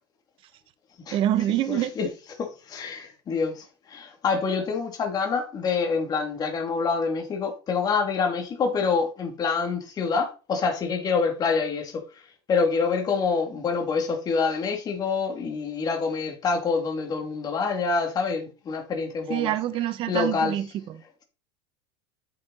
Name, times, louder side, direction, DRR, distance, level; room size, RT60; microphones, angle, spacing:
voice 1, 1.1-1.9 19.3-21.0, right 12 dB, 40° right, 1.0 m, -26 dB
voice 2, 1.7-2.1 2.4-12.0 12.5-19.5 20.1-20.6, left 5 dB, 30° left, 3.0 m, -26 dB
9.5 x 6.5 x 4.3 m
supercardioid pair, 135°, 13 cm